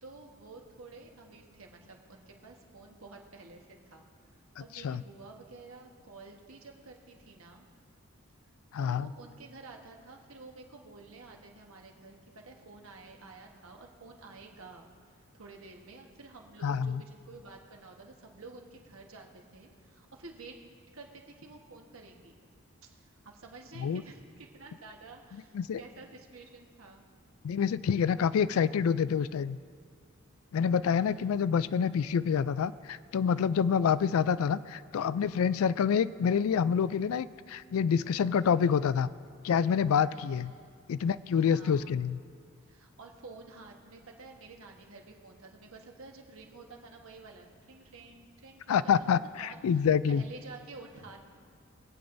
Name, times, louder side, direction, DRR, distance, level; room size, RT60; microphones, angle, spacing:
voice 1, 0.0-4.1 4.6-7.7 8.8-20.6 20.8-22.4 22.8-27.0 30.9-31.3 40.1-40.7 41.4-42.0 42.7-49.1 49.4-49.8 50.1-51.2, right 3 dB, 75° right, 1 dB, 1.3 m, -51 dB
voice 2, 8.7-9.1 16.6-17.0 23.8-24.0 25.5-25.8 27.4-29.6 30.5-39.1 39.4-40.5 40.9-42.2 48.7-50.2, left 7 dB, 80° left, 16 dB, 0.3 m, -27 dB
21.5 x 8.6 x 2.6 m, 2.2 s
head